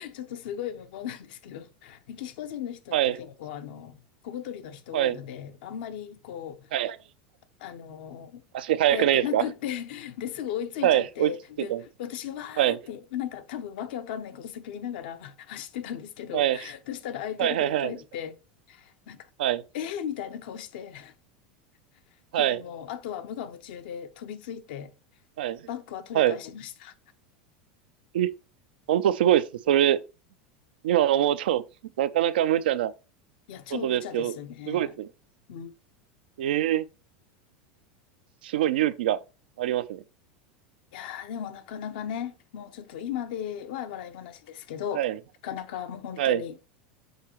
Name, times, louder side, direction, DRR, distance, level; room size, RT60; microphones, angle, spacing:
voice 1, 0.0-4.0 4.2-6.7 7.6-8.4 8.9-11.7 12.0-18.4 18.7-19.2 19.7-21.1 22.3-24.9 25.7-26.9 33.5-34.9 35.5-35.7 40.9-45.1 45.4-46.6, left 9 dB, 70° left, 0.8 m, -36 dB
voice 2, 8.5-9.4 10.8-11.3 11.7-11.8 12.6-12.8 16.3-16.7 17.4-17.9 19.4-19.6 22.3-22.6 25.4-25.6 26.1-26.4 28.1-28.3 28.9-30.0 30.8-31.6 32.0-32.9 33.7-34.3 34.7-35.1 36.4-36.9 38.4-39.2 39.6-40.0 44.9-45.2 46.2-46.4, right 12 dB, 80° right, 0.5 m, -24 dB
6.5 x 4.8 x 3.0 m
hypercardioid pair, 100°, 5 cm